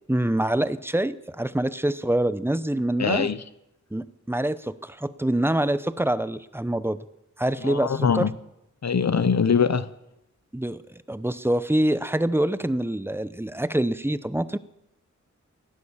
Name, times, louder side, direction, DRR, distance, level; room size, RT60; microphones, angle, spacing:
voice 1, 0.1-3.3 3.9-7.0 7.4-8.3 10.5-10.8 11.1-14.6, right 1 dB, 10° right, 14 dB, 0.8 m, -25 dB
voice 2, 3.0-3.4 7.6-8.3 8.8-9.9, left 6 dB, 60° left, 15 dB, 0.9 m, -22 dB
17.0 x 11.0 x 7.2 m, 0.85 s
wide cardioid pair, 55°, 30 cm